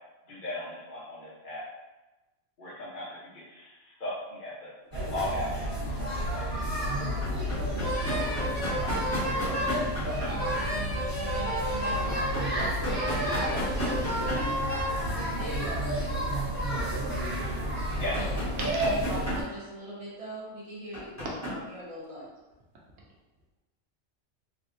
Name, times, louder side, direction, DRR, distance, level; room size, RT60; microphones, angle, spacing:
voice 1, 0.3-1.6 2.6-3.1 3.5-3.7 4.0-4.7 5.1-6.6 18.0-18.2, left 1 dB, 45° left, -9 dB, 1.0 m, -36 dB
sound 1, 4.8-4.9 6.9-10.3 12.1-14.5 14.8-14.9 17.6-19.5 20.9-21.6 22.2-22.3, left 1 dB, 15° left, 0.9 m, -34 dB
sound 2, 4.9-19.4, right 1 dB, 25° right, 1.1 m, -31 dB
Wind instrument woodwind instrument, 7.8-9.8 10.4-12.4 12.9-15.0, equal, 65° left, 1.2 m, -32 dB
voice 2, 9.2-12.2 15.0-15.9 18.1-22.3, right 1 dB, 45° right, -5 dB, 0.5 m, -41 dB
voice 3, 13.4-14.4 16.7-17.7, right 1 dB, 70° right, -3 dB, 0.8 m, -41 dB
3.4 x 2.2 x 2.6 m, 1.1 s
omnidirectional pair, 1.2 m